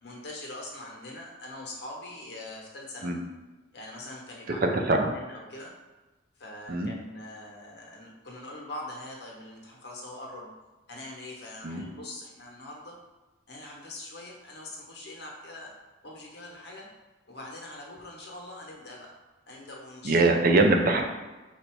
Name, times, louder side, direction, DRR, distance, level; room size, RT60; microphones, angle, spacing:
voice 1, 0.0-3.1 3.7-5.7 6.4-10.5 10.9-12.9 13.5-15.7 16.0-16.9 17.3-19.1 19.5-20.6, left 1 dB, 55° left, -2 dB, 1.0 m, -43 dB
voice 2, 4.6-5.1 6.7-6.9 11.6-11.8 20.0-21.0, right 2 dB, 50° right, 3 dB, 0.5 m, -22 dB
4.4 x 2.7 x 4.5 m, 1.2 s
head